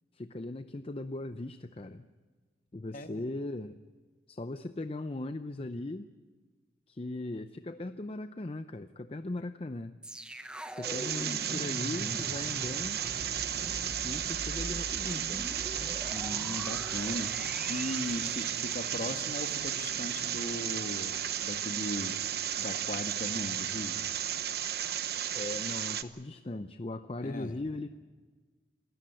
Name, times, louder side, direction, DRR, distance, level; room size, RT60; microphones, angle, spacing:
voice 1, 0.1-2.1 2.7-3.8 4.3-6.1 6.9-10.0 10.7-13.0 14.0-15.5 25.3-27.9, left 2 dB, 35° left, 10 dB, 0.6 m, -38 dB
sound 1, 10.0-21.2 21.5-21.7, equal, 5° right, 1.0 m, -43 dB
sound 2, 10.8-26.0, right 9 dB, 60° right, 0.9 m, -34 dB
voice 2, 16.1-22.2 22.6-24.1 27.2-27.5, left 1 dB, 50° left, 7 dB, 1.4 m, -38 dB
27.5 x 14.0 x 9.0 m, 1.4 s
head